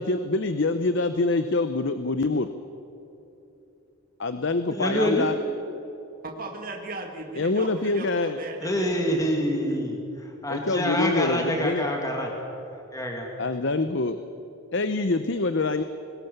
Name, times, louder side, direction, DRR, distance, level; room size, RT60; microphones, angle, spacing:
voice 1, 0.0-2.5 4.2-5.4 7.4-8.4 10.5-11.8 13.4-14.2 14.7-15.8, left 3 dB, 55° left, 10 dB, 0.7 m, -25 dB
voice 2, 4.7-5.3 8.6-12.3 12.7-13.3, equal, 15° left, 1 dB, 2.2 m, -26 dB
voice 3, 6.2-9.4 9.7-9.8, right 2 dB, 40° right, 2 dB, 2.2 m, -38 dB
22.0 x 19.5 x 6.7 m, 2.9 s
head